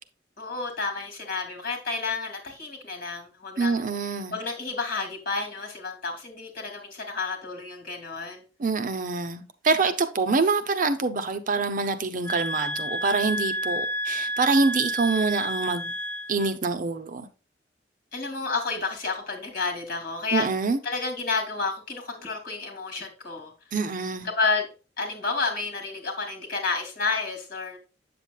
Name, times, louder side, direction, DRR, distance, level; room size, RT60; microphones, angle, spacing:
voice 1, 0.4-8.4 18.1-20.5 20.8-23.5 24.2-24.7 25.0-27.8, left 4 dB, 55° left, 2.5 m, -30 dB
voice 2, 3.6-4.4 8.6-15.9 16.3-17.3 20.3-20.8 23.7-24.3, right 4 dB, 50° right, 0.6 m, -25 dB
sound 1, 12.2-16.6, equal, 15° left, 0.5 m, -30 dB
8.2 x 6.9 x 2.3 m
head